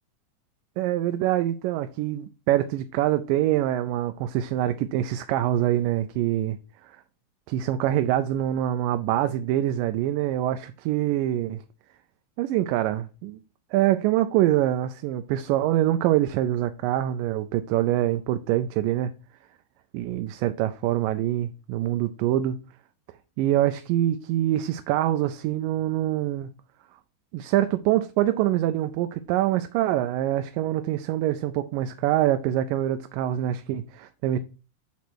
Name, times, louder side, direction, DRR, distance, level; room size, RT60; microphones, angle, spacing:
voice 1, 0.8-6.6 6.8-7.0 7.5-11.6 12.4-13.4 13.7-19.1 19.9-22.6 23.4-26.5 27.3-34.4, right 13 dB, 90° right, 2.2 m, -25 dB
8.3 x 4.1 x 6.1 m
omnidirectional pair, 3.8 m